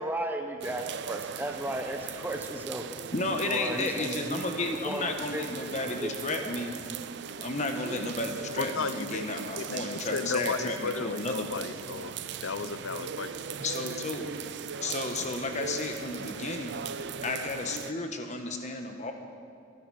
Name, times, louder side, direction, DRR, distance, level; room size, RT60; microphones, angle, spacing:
voice 1, 0.0-2.9 3.4-6.5, right 1 dB, 10° right, 4 dB, 1.1 m, -35 dB
sound 1, 0.6-17.9, right 7 dB, 60° right, 0.5 m, -39 dB
voice 2, 3.1-6.8 7.4-11.7 13.6-14.3 14.8-16.9 17.2-19.1, left 2 dB, 35° left, 4 dB, 1.3 m, -33 dB
voice 3, 8.6-9.3 9.6-12.1 12.4-13.3, left 4 dB, 85° left, 12 dB, 0.7 m, -34 dB
24.0 x 9.8 x 4.9 m, 2.5 s
head